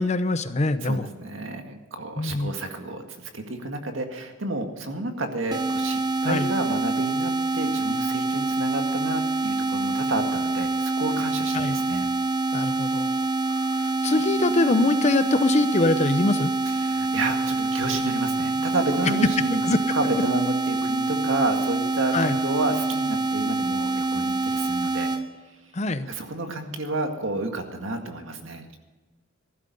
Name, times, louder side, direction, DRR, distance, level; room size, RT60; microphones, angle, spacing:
voice 1, 0.0-1.1 2.2-2.5 6.2-6.5 11.5-11.8 12.5-16.5 19.6-19.8 22.1-22.4 25.7-26.1, left 2 dB, 35° left, 12 dB, 0.8 m, -24 dB
voice 2, 0.8-12.1 16.7-19.6 19.9-25.2 26.0-28.7, right 2 dB, 75° right, 5 dB, 1.9 m, -30 dB
sound 1, 5.5-25.2, right 3 dB, 20° right, 1.0 m, -26 dB
15.0 x 12.0 x 5.5 m, 1.3 s
head